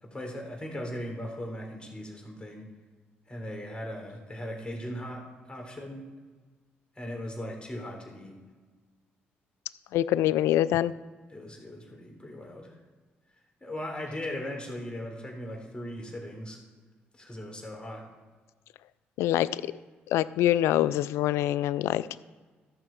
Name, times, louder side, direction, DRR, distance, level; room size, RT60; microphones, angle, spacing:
voice 1, 0.0-2.7 3.3-6.0 7.0-8.4 11.3-12.7 13.6-16.6 17.2-18.1, left 1 dB, 20° left, 0 dB, 3.5 m, -38 dB
voice 2, 9.9-10.9 19.2-19.6 20.1-22.1, left 13 dB, 80° left, 17 dB, 0.4 m, -25 dB
13.5 x 6.3 x 4.5 m, 1.4 s
supercardioid pair, 55°, 5 cm